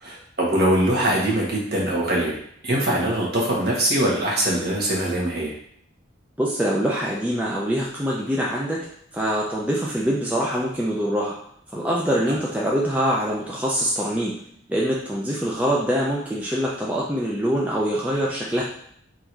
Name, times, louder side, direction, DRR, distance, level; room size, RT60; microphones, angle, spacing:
voice 1, 0.0-2.4 2.6-5.5, right 1 dB, 55° right, -4 dB, 1.3 m, -22 dB
voice 2, 6.4-8.8 9.1-11.3 11.7-14.3 14.7-18.6, equal, 10° right, -4 dB, 0.5 m, -24 dB
3.7 x 2.7 x 4.5 m, 0.68 s
head